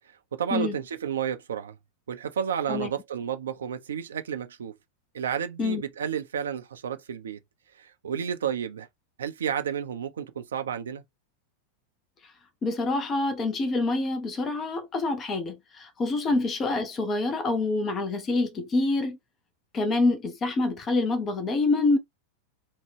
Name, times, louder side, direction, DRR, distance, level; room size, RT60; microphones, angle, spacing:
voice 1, 0.3-1.8 2.1-4.8 5.1-7.4 7.8-8.9 9.2-11.0 16.3-16.4, right 8 dB, 65° right, 0.5 m, -31 dB
voice 2, 12.6-19.2 19.7-22.0, left 3 dB, 25° left, 0.5 m, -26 dB
3.1 x 2.2 x 3.2 m
figure-of-eight pair, 90°, 0 cm